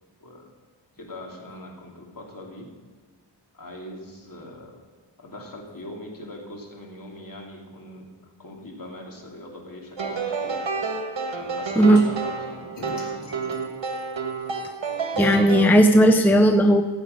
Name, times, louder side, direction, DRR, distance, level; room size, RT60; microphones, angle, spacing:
voice 1, 0.2-0.5 1.0-2.7 3.5-4.8 5.2-8.1 8.4-10.6 11.4-13.4, left 1 dB, 45° left, 0 dB, 2.8 m, -41 dB
sound 1, 10.0-15.7, right 4 dB, 85° right, 1.6 m, -29 dB
sound 2, 11.9-12.1 12.8-15.0, left 1 dB, 65° left, 3.0 m, -43 dB
voice 2, 15.2-16.8, equal, 5° left, 5 dB, 0.7 m, -16 dB
16.0 x 8.2 x 5.4 m, 1.4 s
wide cardioid pair, 100°, 45 cm